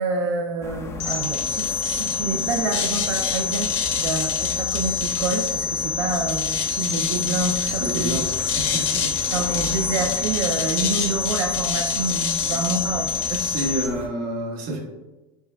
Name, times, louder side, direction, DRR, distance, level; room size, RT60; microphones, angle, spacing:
voice 1, 0.0-8.2 9.3-13.7, right 3 dB, 85° right, 2 dB, 0.4 m, -27 dB
sound 1, 0.6-14.1, left 3 dB, 15° left, 0.4 m, -36 dB
sound 2, 1.0-13.9, left 6 dB, 60° left, 0.8 m, -26 dB
voice 2, 7.8-8.2 8.5-9.1 12.1-12.3 13.3-14.8, right 1 dB, 45° right, 1 dB, 0.9 m, -29 dB
6.5 x 2.3 x 2.2 m, 1.1 s
supercardioid pair, 140°, 16 cm